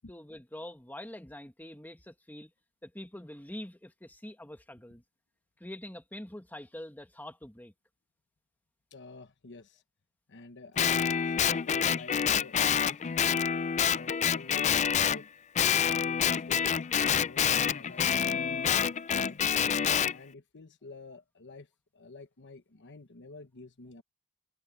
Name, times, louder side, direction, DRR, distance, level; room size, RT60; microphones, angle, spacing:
voice 1, 0.0-2.5 2.8-5.0 5.6-7.7, left 1 dB, 10° left, 1.5 m, -45 dB
voice 2, 8.9-9.8 10.3-13.3 13.9-15.3 15.6-18.9 19.3-24.0, left 3 dB, 55° left, 1.1 m, -49 dB
Guitar, 10.8-15.2 15.6-20.1, left 8 dB, 30° left, 0.4 m, -27 dB
head